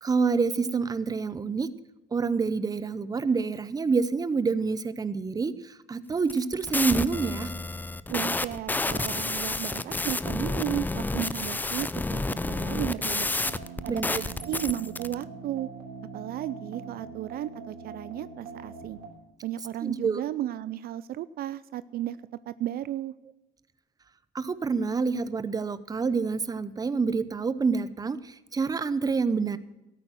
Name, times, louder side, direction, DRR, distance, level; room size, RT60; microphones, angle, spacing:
voice 1, 0.0-1.7 2.1-7.5 13.9-14.2 19.8-20.2 24.3-29.6, right 4 dB, 20° right, 15 dB, 0.7 m, -27 dB
sound 1, 6.2-15.1, left 2 dB, 10° left, 0.5 m, -30 dB
voice 2, 8.1-13.3 13.8-15.7 16.1-19.0 19.4-22.2 22.5-23.1, right 12 dB, 65° right, 16 dB, 0.5 m, -34 dB
sound 2, 13.4-19.1, right 5 dB, 85° right, 3.3 m, -42 dB
13.0 x 9.1 x 7.6 m, 0.98 s
cardioid pair, 110°, 17 cm